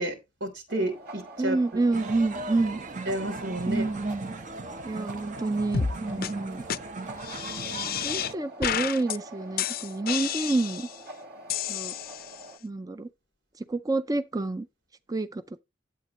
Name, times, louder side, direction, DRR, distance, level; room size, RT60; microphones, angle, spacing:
voice 1, 0.0-1.6 3.1-3.8 6.1-6.5, right 1 dB, 85° right, 3.3 m, -31 dB
sound 1, 0.7-12.6, right 1 dB, 60° right, 2.4 m, -45 dB
voice 2, 1.4-2.8 3.6-4.3 4.9-6.6 7.7-10.9 11.7-11.9 12.6-13.1 13.6-14.7 15.1-15.4, right 2 dB, 20° right, 0.5 m, -28 dB
Praça do Jardim Grande, 1.9-8.3, right 3 dB, 45° right, 0.8 m, -39 dB
sound 2, 5.7-5.9 6.2-6.3 6.7-6.8 7.2-8.3 8.6-9.2 9.6-11.0 11.5-12.4, left 8 dB, 55° left, 0.5 m, -31 dB
12.0 x 8.2 x 3.0 m
head